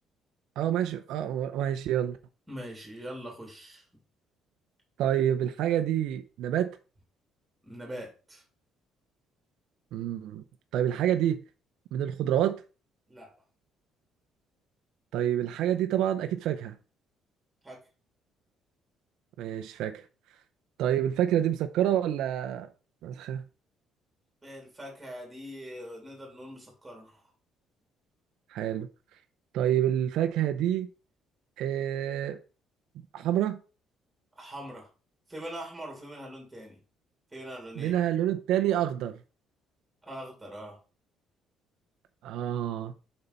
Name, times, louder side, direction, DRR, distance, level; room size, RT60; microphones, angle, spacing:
voice 1, 0.6-2.2 5.0-6.8 9.9-10.4 10.7-11.4 11.9-12.6 15.1-16.8 19.4-20.0 20.8-22.7 23.0-23.4 28.5-28.9 29.5-30.9 31.6-32.4 33.1-33.6 37.8-39.1 42.2-42.9, right 11 dB, 75° right, 0.7 m, -27 dB
voice 2, 2.5-3.8 7.6-8.4 13.1-13.3 17.6-17.8 24.4-27.2 34.4-34.9 35.3-36.8 37.3-38.0 40.0-40.8, equal, 5° right, 3.1 m, -42 dB
6.8 x 5.6 x 4.1 m
cardioid pair, 170°, 0 cm